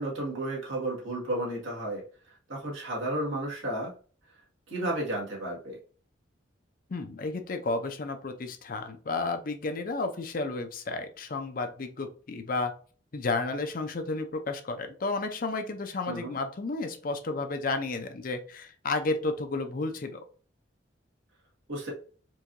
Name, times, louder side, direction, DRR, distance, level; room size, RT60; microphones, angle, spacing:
voice 1, 0.0-2.0 2.5-3.9 4.7-5.8 16.1-16.3 21.7-21.9, right 1 dB, 85° right, -3 dB, 1.7 m, -32 dB
voice 2, 6.9-12.7 13.1-20.2, left 3 dB, 45° left, 7 dB, 0.5 m, -32 dB
4.6 x 2.7 x 2.6 m, 0.40 s
head